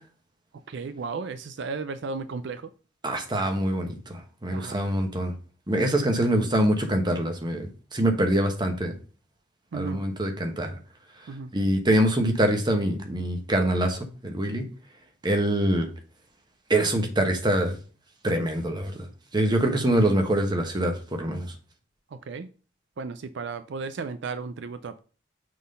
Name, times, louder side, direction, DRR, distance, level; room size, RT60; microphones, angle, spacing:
voice 1, 0.7-2.7 4.5-4.8 9.7-10.0 11.3-11.5 19.7-20.0 22.3-22.5 23.0-25.0, right 4 dB, 65° right, 11 dB, 0.4 m, -34 dB
voice 2, 3.0-5.3 5.7-8.9 9.7-10.7 11.5-14.6 15.2-15.9 16.7-17.8 18.2-19.1 19.3-20.9 21.2-21.4, right 1 dB, 25° right, 4 dB, 1.2 m, -24 dB
6.2 x 3.8 x 5.3 m, 0.37 s
head